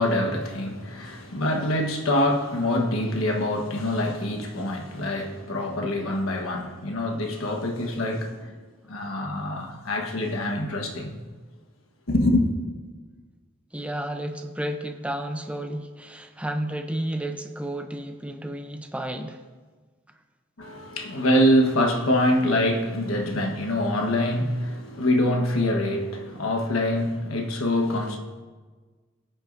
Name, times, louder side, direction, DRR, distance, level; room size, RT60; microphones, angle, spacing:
voice 1, 0.0-8.5 8.9-11.2 12.1-12.5 20.6-28.2, left 1 dB, 85° left, 1.2 m, -25 dB
voice 2, 13.7-19.4, right 1 dB, 5° right, 0.6 m, -32 dB
18.5 x 8.9 x 2.6 m
head